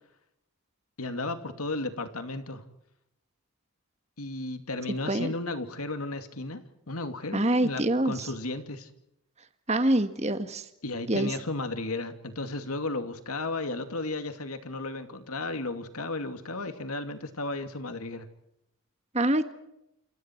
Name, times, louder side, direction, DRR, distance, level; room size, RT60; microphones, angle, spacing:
voice 1, 1.0-2.6 4.2-8.9 10.8-18.3, left 2 dB, 80° left, 8 dB, 2.5 m, -34 dB
voice 2, 7.3-8.1 9.7-10.7 11.1-11.3 19.1-19.5, right 1 dB, 30° right, 9 dB, 1.6 m, -25 dB
29.0 x 27.0 x 4.6 m, 0.83 s
head